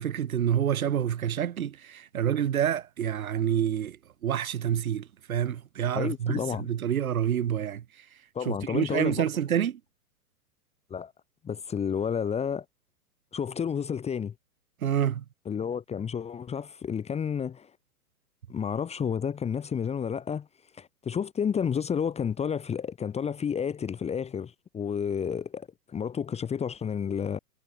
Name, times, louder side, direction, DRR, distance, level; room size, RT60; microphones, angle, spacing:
voice 1, 0.0-4.0 4.2-7.8 8.5-9.8 14.8-15.2, right 9 dB, 65° right, 4.0 m, -28 dB
voice 2, 5.9-6.7 8.4-9.2 10.9-11.1 11.4-12.7 13.3-14.3 15.5-17.7 18.5-20.5 20.8-27.4, left 7 dB, 15° left, 1.7 m, -31 dB
figure-of-eight pair, 110°, 46 cm